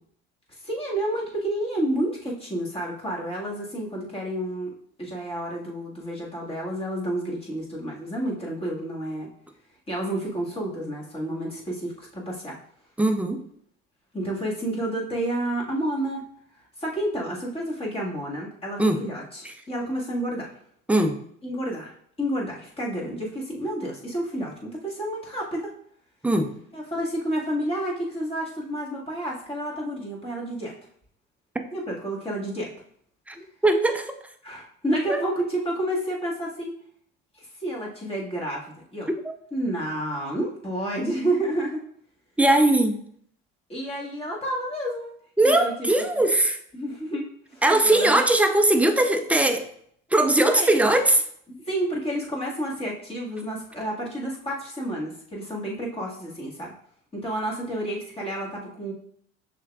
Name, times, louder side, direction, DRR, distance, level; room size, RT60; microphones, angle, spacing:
voice 1, 0.5-4.7 5.0-9.3 9.9-12.6 14.1-16.2 16.8-20.5 21.4-25.7 26.7-30.7 31.7-32.7 34.4-36.7 37.3-38.7 38.9-39.1 39.5-41.8 43.7-45.1 45.4-45.9 46.7-47.2 47.5-48.2 50.4-50.8 51.6-56.7 57.1-58.9, right 1 dB, 20° left, -4 dB, 1.7 m, -30 dB
voice 2, 13.0-13.4 18.8-19.0 19.4-19.5 20.9-21.2 26.2-26.5 33.3-34.1 35.1-35.2 39.2-39.3 42.4-43.0 45.4-46.6 47.6-49.7 50.1-51.2, right 1 dB, 5° right, 6 dB, 0.5 m, -20 dB
6.2 x 3.5 x 2.4 m, 0.64 s
supercardioid pair, 90°, 29 cm